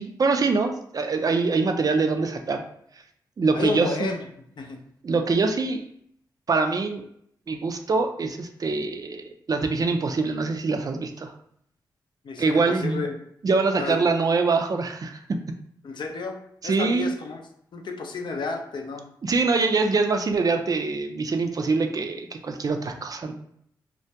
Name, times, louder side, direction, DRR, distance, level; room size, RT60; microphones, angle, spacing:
voice 1, 0.0-2.6 3.4-4.1 5.0-5.8 6.5-7.0 7.5-11.3 12.4-13.0 13.4-15.4 16.6-17.1 19.2-23.3, right 4 dB, 45° right, 6 dB, 0.3 m, -24 dB
voice 2, 3.5-4.2 4.6-4.8 12.2-13.1 13.8-14.0 15.8-16.4 16.6-17.4 17.7-19.0, left 4 dB, 60° left, 3 dB, 0.5 m, -31 dB
2.2 x 2.1 x 2.7 m, 0.70 s
supercardioid pair, 45°, 9 cm